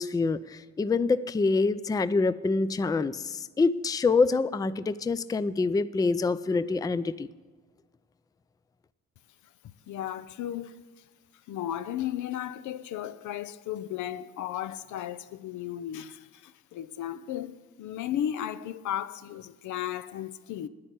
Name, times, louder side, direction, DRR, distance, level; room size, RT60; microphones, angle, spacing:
voice 1, 0.0-7.3, left 4 dB, 15° left, 0.4 m, -26 dB
voice 2, 9.9-10.7 11.5-20.7, left 11 dB, 75° left, 0.6 m, -35 dB
10.0 x 8.7 x 9.4 m
cardioid pair, 90°, 30 cm